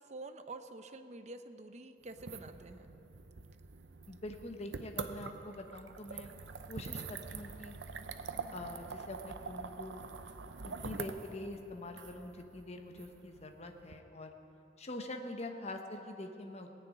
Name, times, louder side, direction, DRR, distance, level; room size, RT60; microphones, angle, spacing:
voice 1, 0.0-2.9, right 2 dB, 40° right, 8 dB, 0.7 m, -48 dB
sound 1, 2.1-13.9, right 4 dB, 75° right, 0.7 m, -45 dB
voice 2, 4.1-6.3 6.7-7.8 8.5-10.0 10.6-14.3 14.8-16.7, left 1 dB, 35° left, 5 dB, 1.0 m, -44 dB
18.5 x 6.8 x 9.1 m, 3.0 s
head